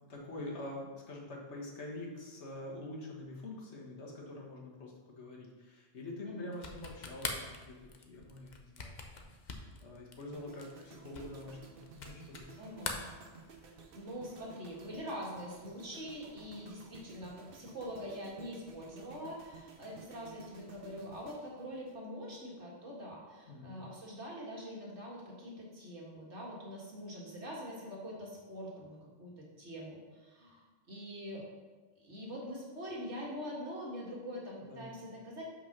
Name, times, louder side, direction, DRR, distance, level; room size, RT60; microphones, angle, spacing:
voice 1, 0.1-12.5 23.5-23.8 34.6-35.0, left 2 dB, 80° left, -2 dB, 1.7 m, -46 dB
sound 1, 6.5-12.5 12.8-13.8, left 4 dB, 45° left, 0.9 m, -43 dB
sound 2, 10.3-22.5 22.8-23.1, right 5 dB, 55° right, 1.0 m, -55 dB
voice 2, 12.6-13.0 13.9-31.5 32.0-35.6, equal, 90° right, -4 dB, 2.2 m, -44 dB
5.7 x 5.5 x 5.9 m, 1.3 s
omnidirectional pair, 1.1 m